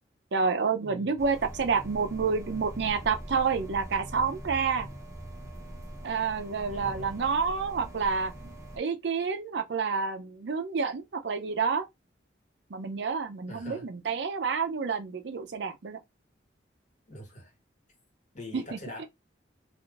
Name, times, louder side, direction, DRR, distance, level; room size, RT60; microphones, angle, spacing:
voice 1, 0.3-4.9 6.0-11.8 12.7-16.0 18.5-18.6, right 5 dB, 65° right, 0.5 m, -29 dB
voice 2, 0.8-1.1 6.7-7.1 13.5-13.9 17.1-17.5 18.3-19.1, left 1 dB, 40° left, 1.3 m, -43 dB
sound 1, 1.2-8.8, right 1 dB, 15° right, 0.6 m, -42 dB
3.4 x 2.5 x 2.4 m
head